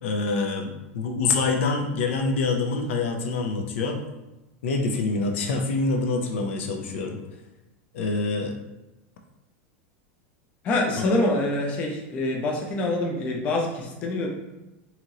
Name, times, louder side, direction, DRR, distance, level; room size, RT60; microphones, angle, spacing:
voice 1, 0.0-4.0 4.6-7.2 7.9-8.5, left 3 dB, 90° left, 3 dB, 0.5 m, -26 dB
voice 2, 10.6-14.3, left 2 dB, 20° left, 0 dB, 0.4 m, -25 dB
2.9 x 2.8 x 2.5 m, 1.0 s
supercardioid pair, 180°, 6 cm